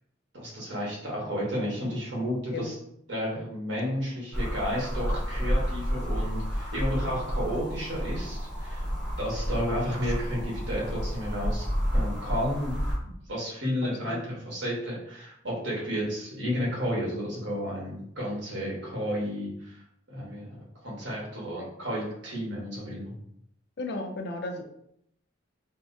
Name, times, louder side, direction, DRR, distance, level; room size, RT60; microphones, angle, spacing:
voice 1, 0.3-2.7 3.1-8.9 9.2-11.6 11.9-12.7 13.3-19.8 20.1-20.6 20.8-23.1, equal, 65° right, -5 dB, 1.3 m, -32 dB
sound 1, 4.3-13.0, equal, 5° right, 1.1 m, -30 dB
voice 2, 13.8-14.2 23.8-24.6, left 2 dB, 55° left, 4 dB, 0.4 m, -34 dB
4.6 x 2.1 x 2.6 m, 0.74 s
head